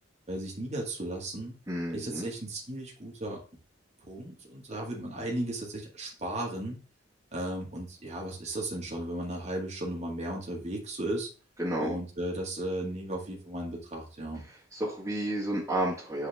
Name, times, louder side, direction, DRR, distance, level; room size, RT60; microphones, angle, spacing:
voice 1, 0.3-1.5 1.9-3.4 4.0-6.8 7.3-11.3 11.8-14.4, right 1 dB, 35° right, -1 dB, 2.1 m, -35 dB
voice 2, 1.7-2.3 11.6-12.0 14.7-16.3, right 1 dB, 15° right, -8 dB, 2.1 m, -31 dB
8.2 x 4.8 x 3.6 m, 0.35 s
head